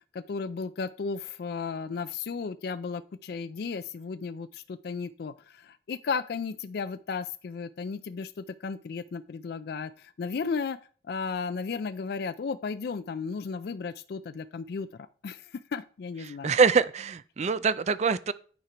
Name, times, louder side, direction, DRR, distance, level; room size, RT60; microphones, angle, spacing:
voice 1, 0.1-5.3 5.6-9.9 10.2-10.8 11.1-14.9 15.2-15.4 15.7-16.5, left 5 dB, 60° left, 0.4 m, -34 dB
voice 2, 16.2-18.3, right 5 dB, 40° right, 0.4 m, -24 dB
9.5 x 4.4 x 5.0 m
head